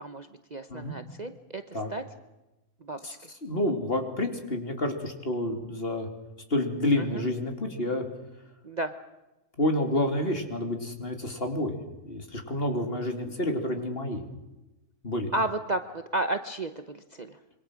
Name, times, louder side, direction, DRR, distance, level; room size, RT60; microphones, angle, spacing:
voice 1, 0.0-1.6 1.9-2.0 2.8-3.2 7.0-7.2 8.6-8.9 15.3-17.3, right 2 dB, 35° right, 8 dB, 0.9 m, -32 dB
voice 2, 3.4-6.1 6.5-8.1 9.6-11.8 12.0-14.2 15.0-15.3, left 1 dB, 40° left, 4 dB, 3.1 m, -29 dB
26.0 x 23.5 x 6.4 m, 1.0 s
omnidirectional pair, 1.5 m